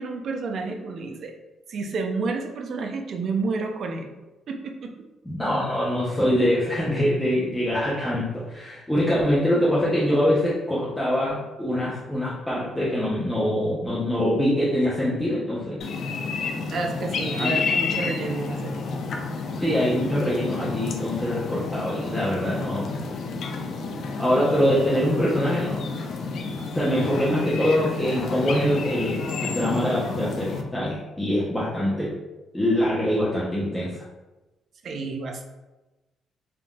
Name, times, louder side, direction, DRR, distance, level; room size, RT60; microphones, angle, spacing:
voice 1, 0.0-1.4 1.7-4.1 4.5-4.9 16.7-18.8 27.3-27.4 34.8-35.5, right 3 dB, 60° right, 4 dB, 0.4 m, -30 dB
voice 2, 5.2-15.8 17.4-17.6 19.5-22.9 24.2-25.9 26.7-32.1 32.5-34.0, equal, 10° left, -8 dB, 0.7 m, -24 dB
sound 1, 15.8-30.6, left 4 dB, 65° left, 0.4 m, -30 dB
3.6 x 2.5 x 2.3 m, 1.1 s
cardioid pair, 90°, 0 cm